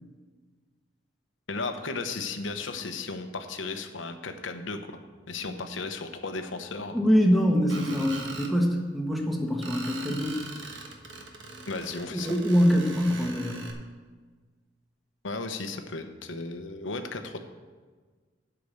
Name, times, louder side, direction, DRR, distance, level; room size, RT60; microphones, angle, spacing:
voice 1, 1.5-5.0 5.3-7.0 11.7-12.3 15.2-17.4, left 3 dB, 90° left, 7 dB, 0.9 m, -35 dB
voice 2, 6.9-10.4 12.1-13.6, equal, ahead, -1 dB, 1.3 m, -24 dB
Screech, 7.7-8.5 9.6-13.7, right 3 dB, 80° right, 1.3 m, -41 dB
8.3 x 5.9 x 8.1 m, 1.4 s
head